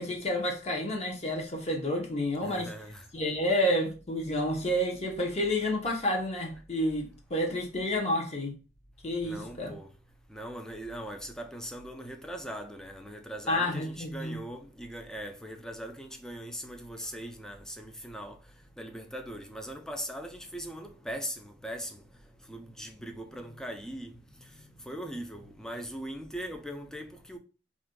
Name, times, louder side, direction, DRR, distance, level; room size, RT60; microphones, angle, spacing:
voice 1, 0.0-2.7 3.1-8.5 9.0-9.7 13.5-14.4, left 1 dB, 40° left, 0.7 m, -30 dB
voice 2, 2.4-3.1 9.2-9.9 10.3-18.4 18.8-22.0 22.5-24.2 24.6-27.4, equal, 5° left, 0.4 m, -40 dB
2.5 x 2.2 x 3.6 m
head